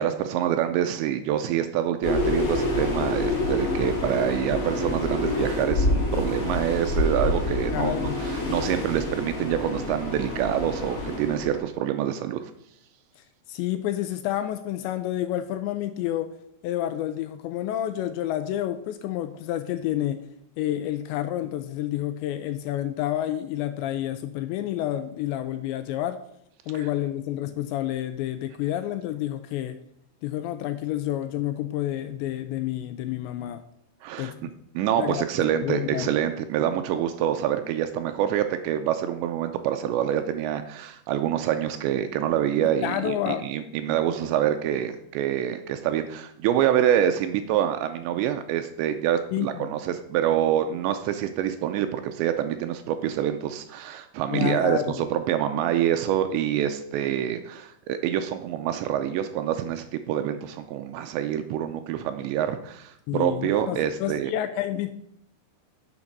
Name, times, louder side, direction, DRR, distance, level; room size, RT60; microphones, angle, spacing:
voice 1, 0.0-7.9 8.2-12.4 26.8-26.9 34.0-34.3 34.8-64.3, right 10 dB, 80° right, 8 dB, 2.7 m, -26 dB
sound 1, 2.0-11.6, left 2 dB, 30° left, 3.1 m, -27 dB
voice 2, 7.7-8.2 13.5-16.3 16.6-20.2 20.6-26.2 26.7-29.8 30.2-33.6 34.2-34.4 35.0-35.2 35.6-36.1 42.8-43.5 49.3-49.7 54.3-55.0 63.1-64.9, left 12 dB, 80° left, 10 dB, 2.7 m, -29 dB
9.5 x 7.2 x 6.0 m, 0.71 s
omnidirectional pair, 5.5 m